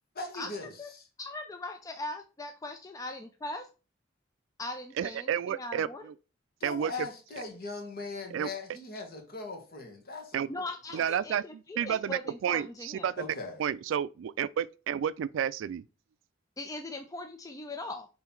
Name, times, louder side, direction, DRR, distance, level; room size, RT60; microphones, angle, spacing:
voice 1, 0.2-1.0 6.6-10.7 10.9-11.0 13.2-13.6, left 3 dB, 55° left, 1.8 m, -40 dB
voice 2, 1.2-3.6 4.6-6.0 10.5-13.1 16.6-18.1, left 2 dB, 20° left, 0.4 m, -40 dB
voice 3, 5.0-5.9 6.6-6.9 8.3-8.5 10.3-10.5 10.9-13.2 13.6-15.8, right 9 dB, 75° right, 0.3 m, -31 dB
5.6 x 3.9 x 4.5 m
head